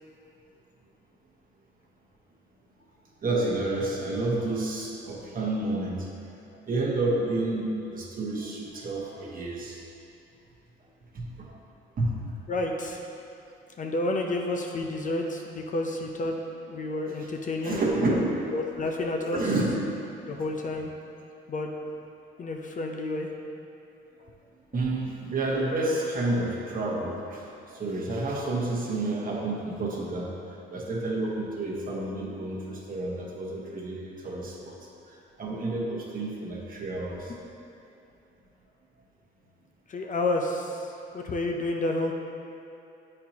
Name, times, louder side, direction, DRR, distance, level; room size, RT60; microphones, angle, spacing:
voice 1, 3.2-6.1 6.5-9.8 11.1-11.6 12.0-12.3 17.6-18.5 19.3-19.8 20.3-20.4 24.2-24.3 24.7-37.3, right 2 dB, 45° right, -3 dB, 1.2 m, -30 dB
voice 2, 12.5-13.0 13.8-16.4 16.6-17.8 18.5-19.5 20.3-20.9 21.5-21.7 22.4-23.3 39.9-42.1, left 2 dB, 40° left, 2 dB, 0.6 m, -30 dB
8.2 x 4.4 x 2.9 m, 2.8 s
cardioid pair, 90°, 20 cm